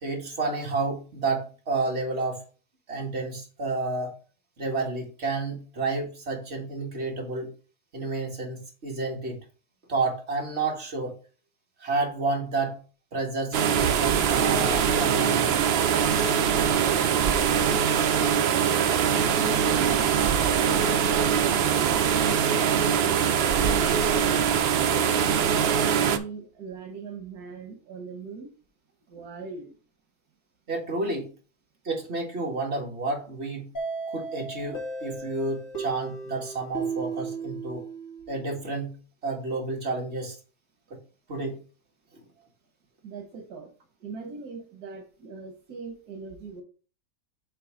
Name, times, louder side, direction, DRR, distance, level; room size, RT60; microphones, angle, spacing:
voice 1, 0.0-2.4 2.9-4.1 4.6-7.5 7.9-9.4 9.9-11.1 11.8-12.8 13.1-15.5 30.7-31.3 31.9-33.7 34.1-37.8 38.3-39.0 39.2-40.4 41.3-41.6, right 3 dB, 45° right, 0 dB, 2.0 m, -30 dB
sound 1, 13.5-26.2, right 8 dB, 65° right, 0.6 m, -23 dB
voice 2, 25.9-28.5 29.1-29.7 43.0-43.7 44.0-46.6, right 4 dB, 85° right, 3 dB, 1.6 m, -41 dB
sound 2, 33.8-38.4, right 4 dB, 60° left, 2.3 m, -35 dB
7.7 x 3.2 x 5.0 m, 0.37 s
omnidirectional pair, 1.6 m